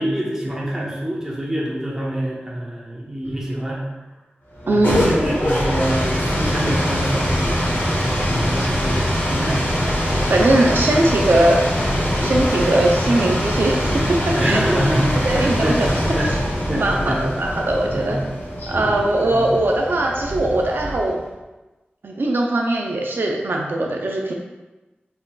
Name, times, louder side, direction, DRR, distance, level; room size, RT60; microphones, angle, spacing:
voice 1, 0.0-3.8 4.6-9.6 14.3-15.8 16.1-16.3 16.7-17.2 17.9-18.1 19.3-19.4, right 1 dB, 15° right, -5 dB, 1.0 m, -26 dB
Speech synthesizer, 3.2-3.4 4.9-5.2 6.4-6.9 8.2-8.7 10.0-10.5 10.9-11.0 11.8-12.4 12.7-13.0 13.7-14.1 15.3-15.6 16.9-17.3 17.8-17.9 18.6-19.1 19.5-19.6, left 1 dB, 55° left, 0.8 m, -32 dB
sound 1, 4.5-21.3, equal, 90° left, 1.1 m, -23 dB
voice 2, 4.7-5.1 10.3-11.6 12.2-14.6 15.2-16.4 16.7-18.2 18.7-21.1 22.0-24.3, right 1 dB, 75° right, 0 dB, 0.4 m, -20 dB
4.2 x 3.9 x 2.3 m, 1.1 s
wide cardioid pair, 80°, 4 cm